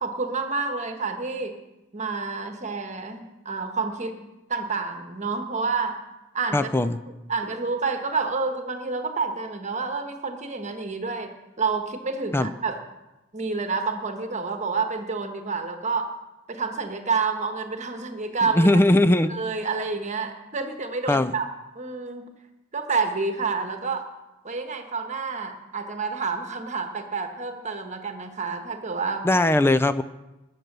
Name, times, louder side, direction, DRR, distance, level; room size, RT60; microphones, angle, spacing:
voice 1, 0.0-1.6 1.9-4.2 4.5-6.0 6.3-6.7 7.0-12.8 13.3-16.1 16.5-18.7 19.3-21.5 21.7-22.3 22.7-24.1 24.4-29.3, right 4 dB, 35° right, 6 dB, 1.3 m, -29 dB
voice 2, 6.5-7.0 12.3-12.5 18.6-19.3 21.1-21.3 29.2-30.0, left 1 dB, 10° left, 13 dB, 0.4 m, -19 dB
21.0 x 7.6 x 6.7 m, 1.0 s
head